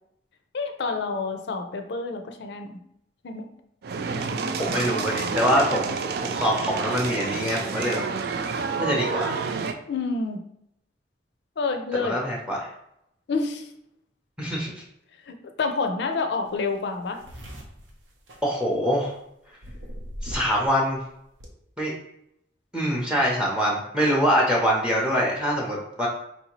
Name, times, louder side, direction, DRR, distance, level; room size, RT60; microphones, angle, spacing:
voice 1, 0.5-2.8 3.2-3.5 4.1-5.3 9.9-10.4 11.6-12.2 13.3-13.7 15.3-17.2, left 4 dB, 65° left, 6 dB, 0.5 m, -29 dB
sound 1, 3.8-9.7, right 5 dB, 60° right, 0.3 m, -29 dB
voice 2, 4.6-5.9 6.2-8.0 8.8-9.4 11.9-12.7 14.4-14.8 18.4-19.2 20.2-21.0 21.8-21.9 22.7-26.1, equal, 5° right, -3 dB, 0.6 m, -24 dB
sound 2, 16.5-16.6 16.8-19.1 19.6-20.7 20.9-21.5, equal, 80° right, 0.7 m, -39 dB
4.4 x 2.7 x 2.9 m, 0.78 s
head